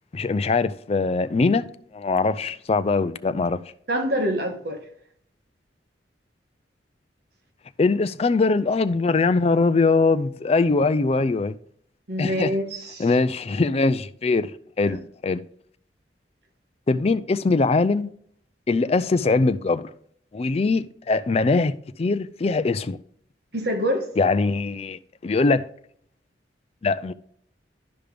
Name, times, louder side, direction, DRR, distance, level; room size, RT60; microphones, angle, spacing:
voice 1, 0.1-1.6 1.9-3.6 7.8-11.6 12.2-12.5 13.0-14.5 14.8-15.4 16.9-18.1 18.7-19.9 20.3-23.0 24.2-25.7 26.8-27.1, left 3 dB, 35° left, 0.4 m, -22 dB
voice 2, 3.9-4.8 12.1-13.0 14.8-15.0 23.5-24.1, equal, 60° right, 1.4 m, -26 dB
11.5 x 5.2 x 3.4 m
head